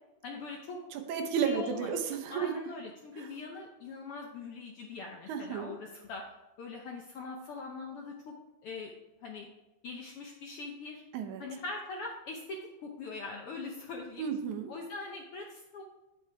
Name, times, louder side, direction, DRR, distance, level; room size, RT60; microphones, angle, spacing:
voice 1, 0.2-0.8 1.4-1.9 2.3-6.2 6.6-8.3 8.6-8.9 9.2-9.5 9.8-11.0 11.4-14.2 14.7-15.8, left 3 dB, 70° left, 0 dB, 1.4 m, -42 dB
voice 2, 0.9-2.6 3.2-3.3 5.3-5.7 11.1-11.4 14.2-14.7, right 7 dB, 80° right, 4 dB, 2.3 m, -33 dB
8.8 x 7.9 x 3.4 m, 1.0 s
omnidirectional pair, 3.5 m